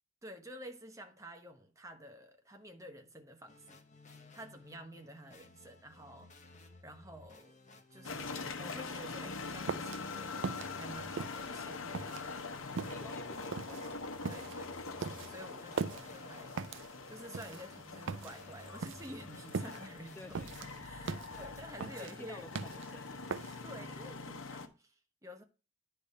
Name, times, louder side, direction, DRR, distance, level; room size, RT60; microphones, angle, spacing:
voice 1, 0.2-3.8 4.3-7.5 7.9-10.5 10.7-12.2 14.3-22.8 23.6-25.4, right 1 dB, 15° right, 1.0 m, -51 dB
sound 1, 3.5-21.8, left 2 dB, 35° left, 1.0 m, -57 dB
sound 2, 8.0-24.7, left 4 dB, 75° left, 0.9 m, -44 dB
sound 3, 9.5-23.8, right 5 dB, 60° right, 0.4 m, -41 dB
voice 2, 12.8-14.1 20.2-20.7 21.1-23.3, left 2 dB, 10° left, 0.3 m, -54 dB
10.0 x 3.4 x 5.5 m
head